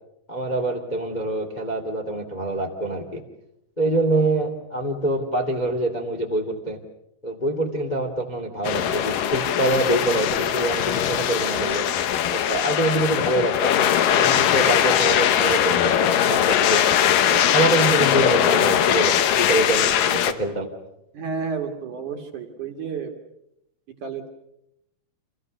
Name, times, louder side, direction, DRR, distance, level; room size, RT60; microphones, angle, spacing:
voice 1, 0.3-3.2 3.8-6.8 7.2-11.8 12.3-13.8 14.2-16.8 17.3-20.7, right 1 dB, 40° left, 2 dB, 0.6 m, -25 dB
sound 1, 8.6-20.3, left 10 dB, 85° left, 1.9 m, -20 dB
voice 2, 21.1-23.1 24.0-24.3, right 5 dB, 55° right, 4 dB, 2.3 m, -31 dB
29.5 x 26.5 x 6.6 m, 0.83 s
omnidirectional pair, 5.7 m